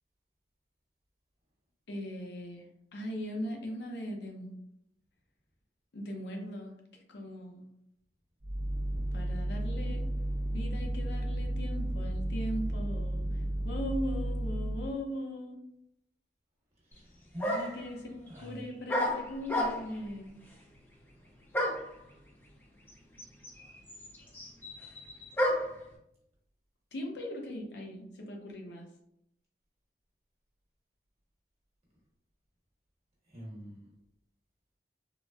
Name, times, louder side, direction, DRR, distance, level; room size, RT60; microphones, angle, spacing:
voice 1, 1.9-2.7 2.9-4.5 5.9-6.7 7.1-7.7 9.1-10.0 10.5-13.3 13.6-15.6 17.5-20.4 26.9-28.9, equal, 70° left, 1 dB, 0.6 m, -39 dB
sound 1, 8.4-15.0, right 1 dB, 75° right, 0.8 m, -33 dB
sound 2, 16.9-17.0 17.4-17.9 18.9-20.0 21.5-21.9 22.9-23.0 23.2-25.8, equal, 10° left, 0.4 m, -31 dB
voice 2, 16.9-18.6 33.3-33.8, left 1 dB, 35° right, -5 dB, 1.1 m, -45 dB
3.8 x 2.0 x 2.3 m, 0.78 s
head